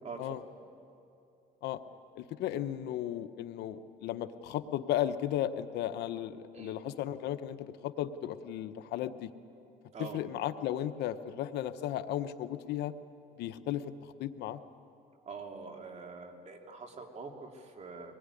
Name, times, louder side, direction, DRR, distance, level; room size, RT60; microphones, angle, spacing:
voice 1, 0.0-0.4 6.5-6.8 9.9-10.2 15.3-18.1, right 4 dB, 40° right, 2 dB, 3.0 m, -44 dB
voice 2, 2.2-9.3 10.0-12.9 13.4-13.8 14.2-14.6, left 11 dB, 80° left, 10 dB, 1.0 m, -35 dB
24.0 x 20.0 x 9.9 m, 2.6 s
cardioid pair, 110°, 17 cm